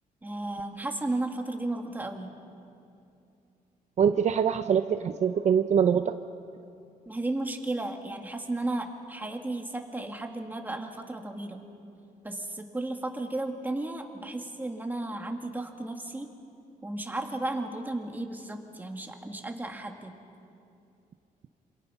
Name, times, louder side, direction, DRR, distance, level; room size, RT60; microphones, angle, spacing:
voice 1, 0.2-2.3 7.1-11.6 12.2-16.3 16.8-20.1, right 2 dB, 10° right, 3 dB, 2.1 m, -34 dB
voice 2, 4.0-6.1, right 7 dB, 50° right, 9 dB, 0.7 m, -24 dB
27.5 x 26.0 x 5.8 m, 2.6 s
cardioid pair, 130°, 15 cm